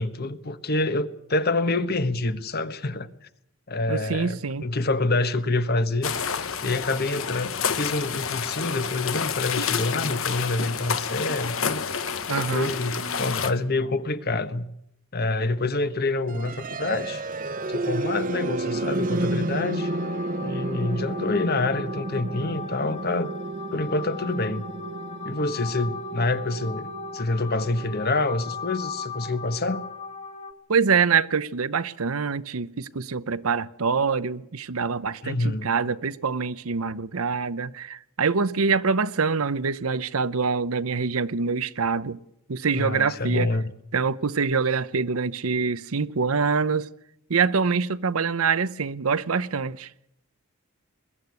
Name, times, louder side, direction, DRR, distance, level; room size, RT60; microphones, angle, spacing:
voice 1, 0.0-3.1 3.7-6.1 6.6-11.8 12.5-14.7 15.1-17.2 17.7-19.9 20.4-23.3 23.7-24.6 25.2-29.8 35.2-35.7 42.7-43.7, left 2 dB, 45° left, 1.1 m, -27 dB
voice 2, 3.9-4.7 12.3-12.7 30.7-42.2 42.5-43.5 43.9-46.9 47.3-49.9, right 5 dB, 85° right, 0.8 m, -25 dB
sound 1, 6.0-13.5, left 6 dB, 70° left, 1.3 m, -29 dB
sound 2, 16.3-28.2, right 2 dB, 40° right, 0.9 m, -31 dB
sound 3, 19.8-30.5, left 2 dB, 30° left, 1.7 m, -37 dB
21.5 x 13.5 x 9.6 m
head